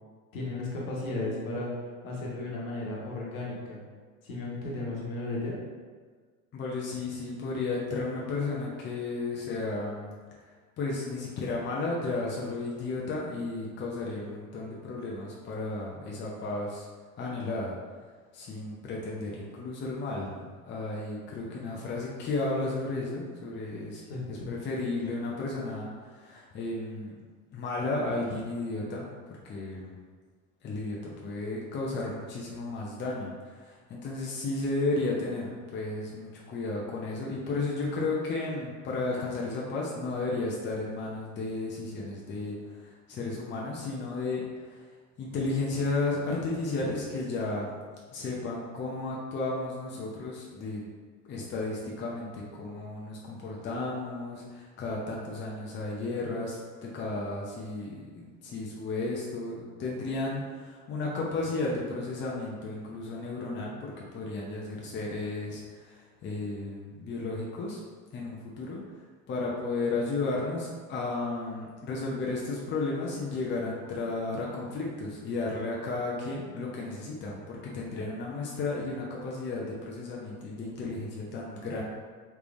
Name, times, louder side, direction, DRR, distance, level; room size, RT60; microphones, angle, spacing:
voice 1, 0.3-1.7 2.0-3.8 4.2-5.6 24.1-24.5, left 2 dB, 75° left, -4 dB, 1.2 m, -34 dB
voice 2, 6.5-10.1 10.8-16.9 17.2-17.7 18.3-24.0 24.3-27.1 27.5-29.1 29.4-30.0 30.6-44.8 45.2-47.8 48.1-50.8 51.2-67.8 68.1-68.8 69.3-81.8, left 3 dB, 25° left, -3 dB, 0.6 m, -33 dB
3.3 x 3.3 x 2.6 m, 1.5 s
hypercardioid pair, 90°, 42 cm